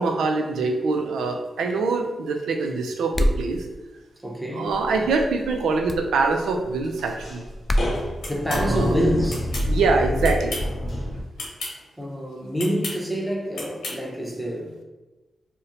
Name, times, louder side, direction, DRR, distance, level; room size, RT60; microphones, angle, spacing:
voice 1, 0.0-3.7 4.5-7.4 8.5-9.0 9.7-10.6, right 4 dB, 90° right, 4 dB, 0.4 m, -24 dB
sound 1, 3.1-3.5 5.9-6.1 7.7-7.9, equal, 25° left, 0.3 m, -22 dB
voice 2, 4.2-4.7 8.3-9.5 12.0-14.8, equal, 5° right, -3 dB, 0.8 m, -27 dB
sound 2, 4.7-11.2, left 1 dB, 65° left, 0.7 m, -28 dB
sound 3, 8.2-8.6 9.3-9.7 10.2-10.7 11.3-11.7 12.6-13.0 13.5-14.0, left 2 dB, 80° left, 1.0 m, -33 dB
2.7 x 2.1 x 3.8 m, 1.1 s
cardioid pair, 55°, 0 cm